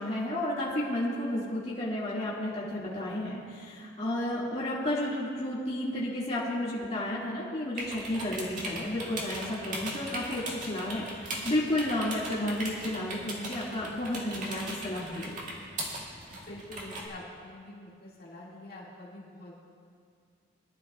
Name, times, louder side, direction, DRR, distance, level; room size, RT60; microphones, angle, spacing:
voice 1, 0.0-15.4, left 1 dB, 35° left, -7 dB, 2.2 m, -32 dB
sound 1, 7.8-17.1, right 1 dB, 40° right, 2.1 m, -39 dB
voice 2, 16.3-19.6, left 1 dB, 50° left, -5 dB, 2.2 m, -46 dB
22.0 x 11.5 x 2.4 m, 2.2 s
head